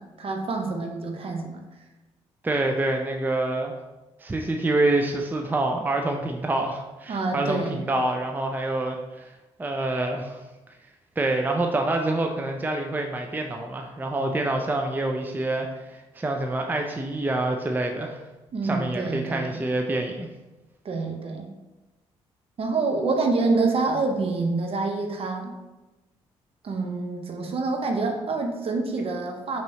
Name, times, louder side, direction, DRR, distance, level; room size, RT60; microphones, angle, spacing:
voice 1, 0.0-1.6 7.1-7.8 18.5-19.6 20.8-21.5 22.6-25.5 26.6-29.6, right 3 dB, 50° right, 3 dB, 0.8 m, -27 dB
voice 2, 2.4-3.7 4.2-9.3 9.6-10.4 11.2-18.2 18.6-20.3, right 2 dB, 15° right, 3 dB, 0.5 m, -26 dB
5.4 x 3.0 x 2.8 m, 1.1 s
supercardioid pair, 60°, 12 cm